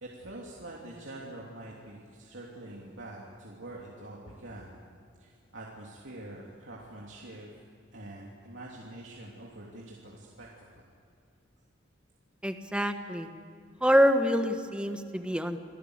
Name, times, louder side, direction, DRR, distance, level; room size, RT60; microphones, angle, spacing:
voice 1, 0.0-4.8 5.2-7.5 7.9-10.5 10.8-10.9, right 1 dB, 70° right, -3 dB, 3.1 m, -45 dB
voice 2, 12.4-13.3 13.8-15.6, equal, 5° right, 6 dB, 1.4 m, -26 dB
27.5 x 18.0 x 8.2 m, 2.4 s
head